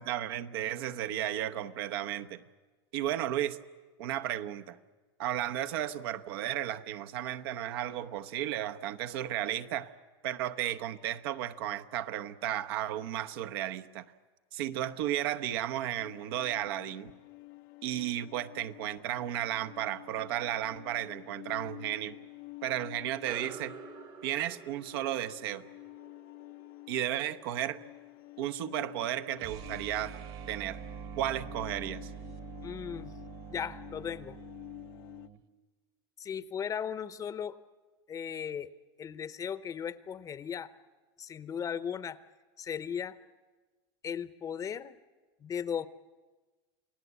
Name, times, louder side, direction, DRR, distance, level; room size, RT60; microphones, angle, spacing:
voice 1, 0.0-2.4 2.9-3.6 4.0-4.8 5.2-9.9 10.2-14.0 14.5-17.1 17.8-22.2 22.6-23.7 24.2-25.6 26.9-27.8 28.4-30.2 30.5-30.8 31.2-32.1, right 12 dB, 75° right, 10 dB, 1.0 m, -34 dB
sound 1, 16.0-35.3, left 22 dB, 60° left, 0.7 m, -50 dB
sound 2, 23.2-28.1, right 7 dB, 30° right, 0.9 m, -50 dB
sound 3, 29.3-35.4, right 9 dB, 50° right, 1.5 m, -45 dB
voice 2, 32.6-33.1 33.5-34.4 36.2-37.6 38.1-38.7 39.0-40.7 41.2-42.2 42.6-43.2 44.0-45.0 45.4-45.9, left 8 dB, 25° left, 15 dB, 0.8 m, -36 dB
29.0 x 18.5 x 8.2 m, 1.3 s
supercardioid pair, 125°, 13 cm